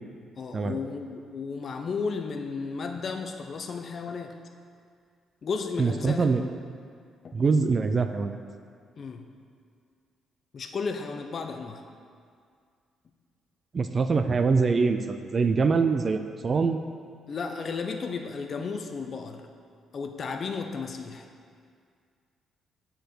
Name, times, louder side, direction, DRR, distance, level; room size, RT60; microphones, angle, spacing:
voice 1, 0.4-4.4 5.4-6.5 7.2-7.4 9.0-9.3 10.5-11.8 17.3-19.5 19.9-21.3, left 5 dB, 40° left, 5 dB, 0.6 m, -34 dB
voice 2, 5.8-6.4 7.3-8.4 13.7-16.8, right 4 dB, 30° right, 8 dB, 0.4 m, -24 dB
7.8 x 4.5 x 6.4 m, 2.2 s
cardioid pair, 135°, 0 cm